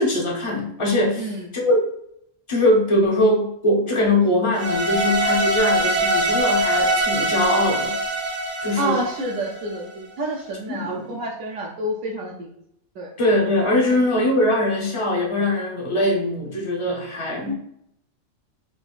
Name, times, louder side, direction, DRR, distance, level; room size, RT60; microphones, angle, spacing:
voice 1, 0.0-1.8 2.5-7.9 8.6-9.0 10.7-11.1 13.2-17.5, left 1 dB, 35° left, -1 dB, 0.5 m, -21 dB
voice 2, 1.2-1.5 8.8-12.5 13.0-13.1 13.9-14.0 17.5-17.6, right 1 dB, 75° right, -1 dB, 1.0 m, -28 dB
sound 1, 4.5-9.8, right 1 dB, 45° right, 0.6 m, -23 dB
5.1 x 2.4 x 2.3 m, 0.74 s
omnidirectional pair, 1.4 m